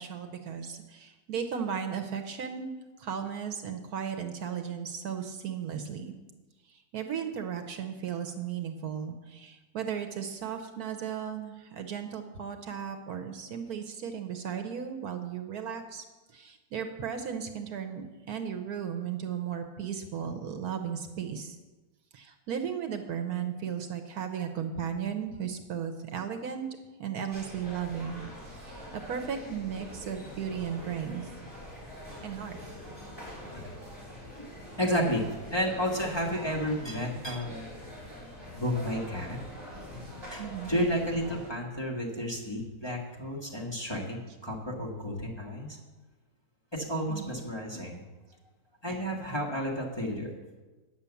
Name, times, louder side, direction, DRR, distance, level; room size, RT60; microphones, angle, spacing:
voice 1, 0.0-2.7 3.0-6.1 6.9-16.0 16.3-21.6 22.1-26.6 27.0-31.3 32.2-32.6 40.4-40.8 44.3-44.4 47.1-47.4, right 8 dB, 70° right, 6 dB, 1.2 m, -35 dB
sound 1, 27.3-41.5, equal, 10° right, 4.1 m, -44 dB
voice 2, 34.8-37.7 38.5-39.4 40.3-45.8 46.7-48.0 48.8-50.3, equal, 15° left, -3 dB, 1.5 m, -32 dB
9.5 x 6.8 x 7.0 m, 1.2 s
omnidirectional pair, 1.8 m